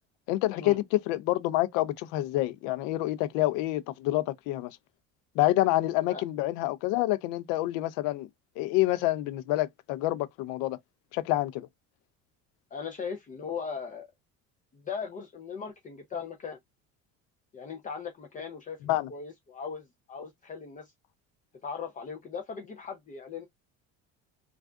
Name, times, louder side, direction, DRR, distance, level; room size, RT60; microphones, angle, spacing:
voice 1, 0.3-4.7 5.3-8.3 8.6-10.8 11.1-11.7 18.8-19.1, left 16 dB, 85° left, 0.5 m, -27 dB
voice 2, 12.7-14.1 14.7-16.6 17.5-20.9 21.6-23.4, left 6 dB, 25° left, 0.5 m, -38 dB
3.4 x 2.4 x 2.3 m
cardioid pair, 145°, 31 cm